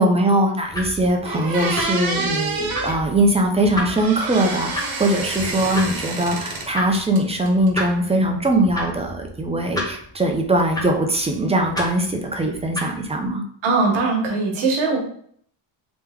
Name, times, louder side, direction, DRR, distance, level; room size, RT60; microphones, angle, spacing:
voice 1, 0.0-13.4, right 1 dB, 15° right, 2 dB, 0.5 m, -21 dB
sound 1, 0.7-13.3, left 1 dB, 10° left, 0.8 m, -33 dB
sound 2, 0.8-0.9 1.2-3.0 3.9-6.7 6.9-7.7, right 3 dB, 45° right, 1.1 m, -28 dB
voice 2, 13.6-15.0, right 3 dB, 80° right, -1 dB, 1.2 m, -20 dB
3.3 x 3.0 x 3.5 m, 0.62 s
cardioid pair, 135°, 47 cm